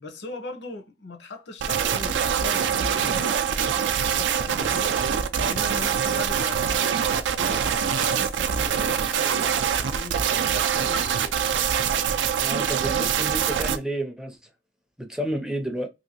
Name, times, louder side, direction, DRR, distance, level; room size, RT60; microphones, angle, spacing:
voice 1, 0.0-11.4, left 3 dB, 70° left, 0.7 m, -39 dB
sound 1, 1.6-13.8, right 8 dB, 90° right, 0.4 m, -24 dB
voice 2, 12.4-14.4 15.0-15.9, right 1 dB, 5° right, 0.4 m, -30 dB
2.9 x 2.7 x 2.8 m
head